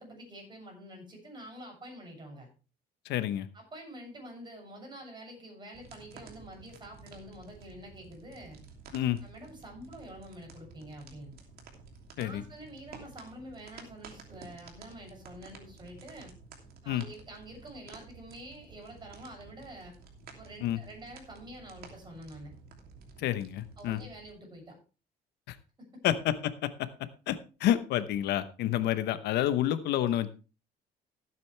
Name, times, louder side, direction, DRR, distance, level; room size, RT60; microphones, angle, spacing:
voice 1, 0.0-2.5 3.5-8.6 9.2-11.4 12.2-16.3 16.8-20.0 20.3-22.5 23.8-24.8 25.9-26.0, right 1 dB, 25° right, 1 dB, 7.4 m, -47 dB
voice 2, 3.0-3.5 8.9-9.2 12.2-12.4 16.9-17.0 20.6-20.8 23.2-24.0 25.5-25.6 26.0-26.9 27.3-30.3, left 12 dB, 80° left, 13 dB, 0.9 m, -29 dB
sound 1, 5.7-24.3, right 4 dB, 65° right, 2.9 m, -52 dB
15.5 x 9.0 x 3.3 m, 0.34 s
cardioid pair, 110°, 17 cm